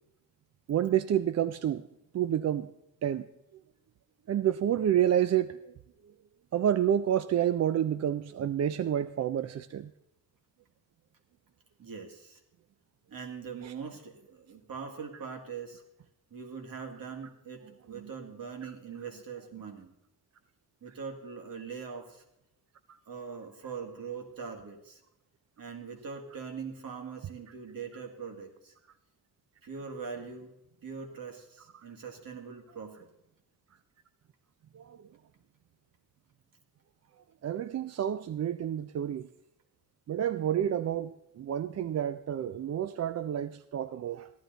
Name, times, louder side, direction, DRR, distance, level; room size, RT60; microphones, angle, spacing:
voice 1, 0.7-1.8 2.1-2.7 3.0-3.3 4.3-5.7 6.5-9.9 13.6-13.7 17.9-18.1 18.6-18.7 22.9-23.0 31.7-31.8 34.7-35.0 37.4-39.3 40.1-44.3, right 10 dB, 45° right, 12 dB, 0.4 m, -29 dB
voice 2, 11.8-12.4 13.1-15.8 16.3-19.9 20.8-22.2 23.1-25.0 25.6-28.7 29.6-30.5 30.8-33.1, right 6 dB, 65° right, 3 dB, 2.1 m, -42 dB
14.5 x 11.0 x 3.9 m, 0.86 s
cardioid pair, 110°, 37 cm